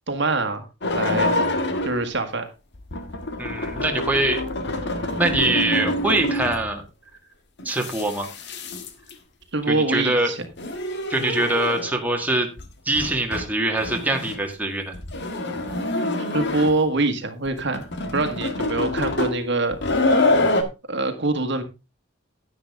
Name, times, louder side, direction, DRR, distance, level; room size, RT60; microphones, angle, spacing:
voice 1, 0.1-0.7 0.9-1.4 1.8-2.5 9.5-10.5 11.2-11.4 16.3-19.8 20.9-21.6, right 2 dB, 60° right, 8 dB, 1.5 m, -24 dB
sound 1, 0.8-2.0 2.7-6.7 7.6-9.1 10.4-12.0 12.6-12.7 12.9-13.5 13.8-14.4 14.9-16.9 17.4-20.6, left 2 dB, 60° left, 1.5 m, -26 dB
voice 2, 3.4-4.4 5.2-6.8 7.6-8.3 9.7-10.3 11.1-12.5 12.8-14.9, right 2 dB, 10° right, 2 dB, 1.7 m, -23 dB
10.5 x 9.8 x 3.5 m, 0.27 s
head